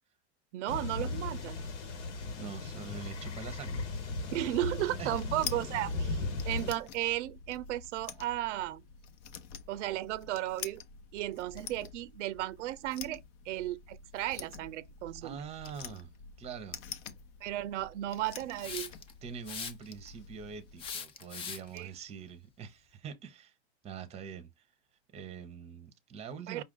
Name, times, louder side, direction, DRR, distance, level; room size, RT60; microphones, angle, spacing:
voice 1, 0.5-1.6 4.3-8.8 9.7-10.8 11.1-13.2 13.5-15.4 17.4-18.9 21.7-21.9 26.5-26.6, right 15 dB, 85° right, 0.5 m, -35 dB
sound 1, 0.7-6.7, left 3 dB, 80° left, 1.7 m, -37 dB
voice 2, 2.4-3.8 5.0-5.1 15.2-16.8 19.2-23.5 23.8-24.7 25.1-26.6, right 6 dB, 20° right, 0.7 m, -44 dB
sound 2, 4.7-20.9, left 7 dB, 50° left, 0.8 m, -47 dB
Hiss, 18.6-19.1 19.5-20.1 20.8-21.8, left 6 dB, 15° left, 0.3 m, -40 dB
5.4 x 2.5 x 3.7 m
supercardioid pair, 145°, 35 cm